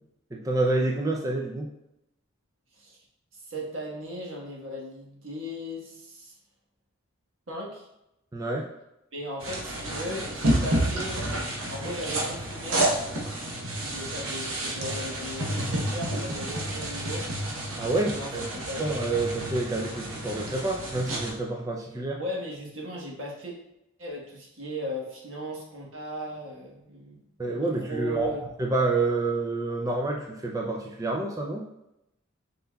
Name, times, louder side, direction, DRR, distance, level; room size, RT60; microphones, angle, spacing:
voice 1, 0.3-1.7 8.3-8.7 17.8-18.4 18.8-22.2 27.4-31.7, right 2 dB, 15° right, 0 dB, 0.4 m, -28 dB
voice 2, 3.5-6.3 7.5-7.9 9.1-11.2 11.7-12.8 13.8-17.3 17.8-18.8 19.1-19.2 22.2-23.5 24.0-28.4, equal, 70° right, -2 dB, 1.3 m, -37 dB
sound 1, 9.4-21.3, right 1 dB, 90° right, 1.0 m, -30 dB
5.8 x 3.9 x 2.3 m, 0.86 s
head